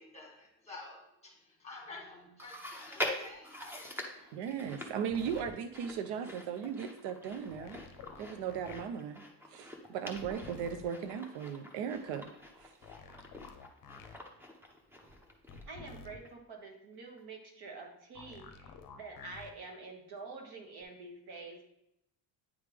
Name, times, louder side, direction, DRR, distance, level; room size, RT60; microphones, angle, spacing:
voice 1, 0.0-3.6, left 3 dB, 15° left, -1 dB, 1.5 m, -50 dB
Chewing mastication, 2.4-15.9 16.2-16.3 17.2-17.3, left 1 dB, 5° right, 0.6 m, -45 dB
voice 2, 4.3-7.8 8.2-12.3 12.6-12.7, right 7 dB, 80° right, 9 dB, 0.6 m, -37 dB
sound 1, 5.1-5.5 7.5-8.8 10.2-10.8 12.8-14.2 15.5-16.2 18.2-19.5 20.8-20.9, left 5 dB, 50° left, 0.7 m, -50 dB
voice 3, 15.7-21.6, right 3 dB, 55° right, 2 dB, 1.4 m, -47 dB
9.2 x 3.3 x 3.3 m, 0.80 s
cardioid pair, 140°, 45 cm